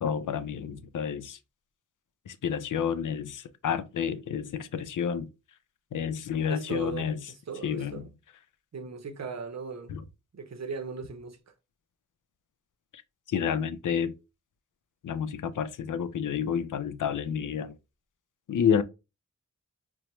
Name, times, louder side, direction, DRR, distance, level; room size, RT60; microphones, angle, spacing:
voice 1, 0.0-1.4 2.3-5.3 5.9-7.2 7.6-8.0 9.9-10.0 13.3-14.1 15.0-17.7 18.5-18.8, left 7 dB, 85° left, 0.5 m, -29 dB
voice 2, 6.5-8.2 8.7-10.0 10.3-11.4, right 5 dB, 60° right, 0.7 m, -38 dB
4.4 x 2.0 x 2.9 m
wide cardioid pair, 90°, 30 cm